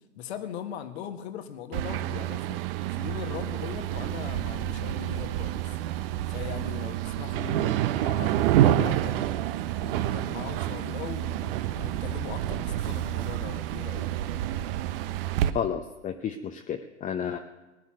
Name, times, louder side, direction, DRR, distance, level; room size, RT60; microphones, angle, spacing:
voice 1, 0.1-2.6 2.9-5.6 6.3-9.3 9.8-14.1, left 9 dB, 60° left, 8 dB, 1.8 m, -40 dB
sound 1, 1.7-15.5, right 12 dB, 50° right, 1.0 m, -28 dB
voice 2, 15.5-17.4, left 8 dB, 20° left, 6 dB, 0.9 m, -31 dB
19.0 x 10.0 x 6.4 m, 1.1 s
hypercardioid pair, 105°, 36 cm